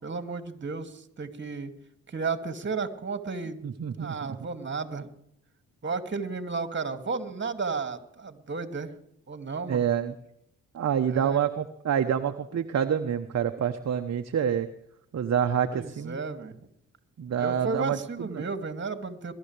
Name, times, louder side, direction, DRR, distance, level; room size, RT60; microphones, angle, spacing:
voice 1, 0.0-1.7 2.1-3.6 4.0-5.1 5.8-8.9 9.3-9.9 11.1-11.4 15.7-16.6 17.4-19.3, right 4 dB, 35° right, 8 dB, 2.4 m, -33 dB
voice 2, 3.6-4.1 9.7-10.1 10.7-14.7 15.1-16.2 17.2-18.4, right 8 dB, 50° right, 6 dB, 1.1 m, -27 dB
21.5 x 13.0 x 3.4 m, 0.73 s
supercardioid pair, 50°, 34 cm